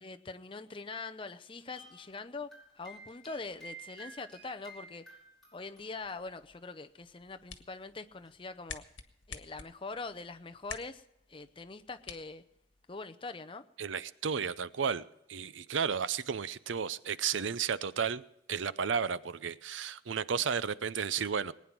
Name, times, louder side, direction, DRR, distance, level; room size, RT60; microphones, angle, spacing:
voice 1, 0.0-2.5 2.8-5.0 5.5-8.8 9.3-11.0 11.3-12.4 12.9-13.6, left 3 dB, 30° left, 9 dB, 0.7 m, -43 dB
sound 1, 1.7-6.8 7.0-7.2 8.3-8.4, right 2 dB, ahead, 5.0 m, -53 dB
sound 2, 7.1-13.1, left 6 dB, 85° left, 1.4 m, -50 dB
voice 2, 13.8-18.2 18.5-21.5, right 6 dB, 90° right, 17 dB, 0.6 m, -33 dB
20.0 x 9.6 x 6.1 m, 0.79 s
head